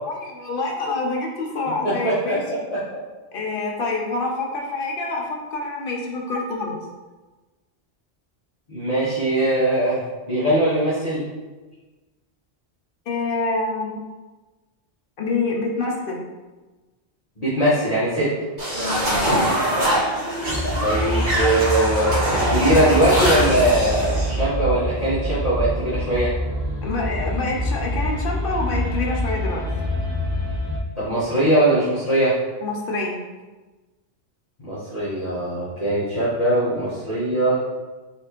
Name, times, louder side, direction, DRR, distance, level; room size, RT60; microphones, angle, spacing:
voice 1, 0.0-2.4 3.3-6.8 13.1-14.0 15.2-16.2 19.2-19.5 26.8-29.7 32.6-33.2, left 3 dB, 55° left, 0 dB, 0.8 m, -26 dB
voice 2, 2.0-2.8 8.7-11.2 17.4-18.3 20.8-26.3 31.0-32.3 34.6-37.6, right 1 dB, 35° left, -12 dB, 1.2 m, -21 dB
sound 1, 18.6-24.3, right 1 dB, 45° right, 1.4 m, -23 dB
sound 2, 20.4-30.8, left 1 dB, 20° right, 1.4 m, -26 dB
4.2 x 3.2 x 2.9 m, 1.2 s
omnidirectional pair, 1.2 m